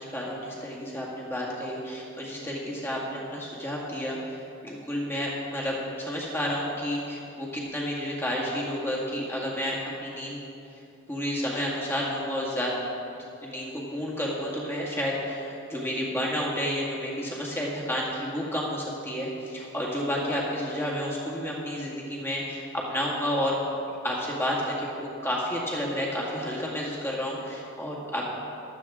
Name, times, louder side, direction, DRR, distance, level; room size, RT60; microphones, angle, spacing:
voice 1, 0.0-10.4 11.1-12.7 13.4-23.6 24.0-28.3, equal, 10° left, -4 dB, 1.9 m, -31 dB
15.5 x 12.0 x 3.7 m, 2.8 s
head